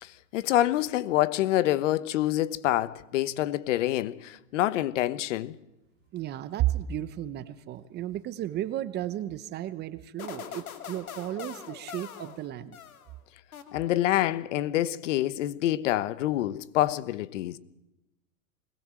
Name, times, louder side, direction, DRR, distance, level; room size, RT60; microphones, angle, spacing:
voice 1, 0.0-5.6 13.7-17.6, left 14 dB, 60° left, 1.2 m, -27 dB
voice 2, 6.1-12.8, right 13 dB, 25° right, 0.9 m, -33 dB
sound 1, 10.2-13.1 13.5-14.2, left 8 dB, 85° left, 2.4 m, -43 dB
21.5 x 19.0 x 7.6 m
hypercardioid pair, 135°, 42 cm